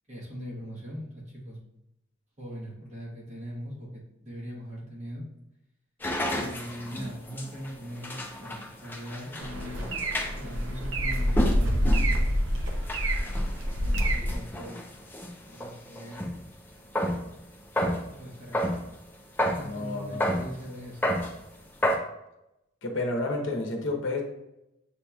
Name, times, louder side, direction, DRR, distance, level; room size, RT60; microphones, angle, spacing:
voice 1, 0.1-1.6 2.4-5.3 6.3-10.0 10.3-12.4 13.8-16.3 18.2-18.8 19.4-21.2, equal, 35° right, -5 dB, 1.0 m, -41 dB
sound 1, 6.0-16.4 16.7-17.3 17.6-18.9 19.4-19.7 20.2-20.5 20.8-21.4 21.8-22.0, equal, 10° left, 0.4 m, -31 dB
sound 2, 9.4-14.3, equal, 60° right, 0.6 m, -26 dB
voice 2, 19.6-20.3 22.8-24.2, left 2 dB, 60° left, 2 dB, 0.8 m, -30 dB
6.9 x 2.9 x 2.3 m, 0.87 s
head